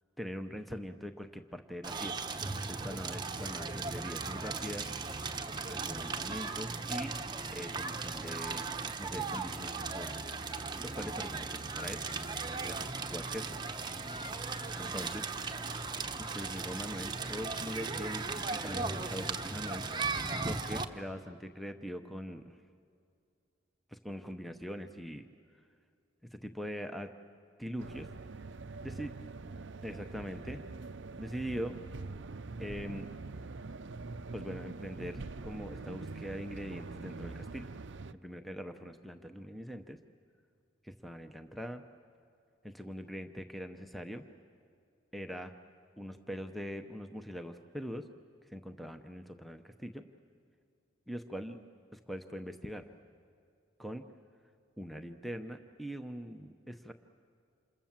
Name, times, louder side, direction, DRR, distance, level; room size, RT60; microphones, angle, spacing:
voice 1, 0.2-4.9 5.7-7.1 7.5-8.7 9.0-10.3 10.8-12.0 12.6-13.6 14.7-15.3 16.2-19.9 20.5-22.6 23.9-25.2 26.3-27.1 27.6-28.1 28.8-29.1 29.8-30.6 31.2-31.8 32.6-33.1 34.3-37.7 38.1-40.0 40.8-41.8 42.6-44.2 45.1-45.5 46.0-48.1 48.5-50.0 51.1-51.6 51.9-52.9 53.8-54.0 54.8-56.9, equal, ahead, 7 dB, 0.8 m, -42 dB
Crackle, 1.8-20.8, right 4 dB, 20° right, 1.0 m, -37 dB
sound 1, 27.8-38.1, right 3 dB, 65° right, 0.6 m, -44 dB
28.0 x 27.5 x 7.4 m, 2.4 s
head